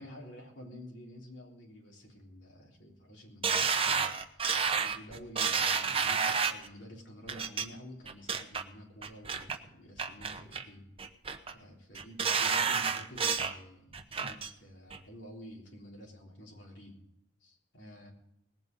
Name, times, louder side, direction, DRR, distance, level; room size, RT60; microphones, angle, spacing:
voice 1, 0.0-4.5 4.7-10.9 11.5-17.0 17.4-18.1, equal, 70° left, -2 dB, 3.7 m, -50 dB
sound 1, 3.4-6.7 7.3-7.6 8.1-8.6 9.0-9.6 10.0-10.7 11.0-11.5 11.9-13.6 13.9-14.5 14.9-15.0, right 6 dB, 30° right, 0.9 m, -30 dB
19.5 x 8.6 x 5.3 m, 0.79 s
head